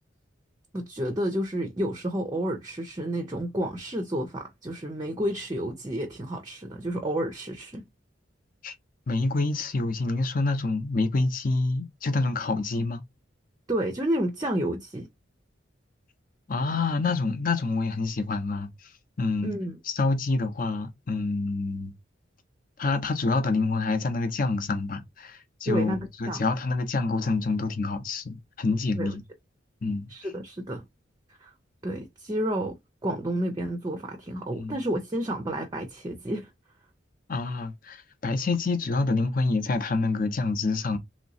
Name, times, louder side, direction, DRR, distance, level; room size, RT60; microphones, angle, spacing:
voice 1, 0.7-7.9 13.7-15.1 19.4-19.8 25.7-26.4 28.9-29.2 30.1-30.8 31.4-31.5 31.8-32.8 33.0-36.5, right 1 dB, 20° right, 0.5 m, -30 dB
voice 2, 9.1-13.0 16.5-18.7 19.2-19.5 19.9-21.9 22.8-25.9 26.2-29.2 29.8-30.1 34.5-34.8 37.3-41.0, left 3 dB, 45° left, 0.6 m, -27 dB
3.1 x 2.9 x 2.7 m
head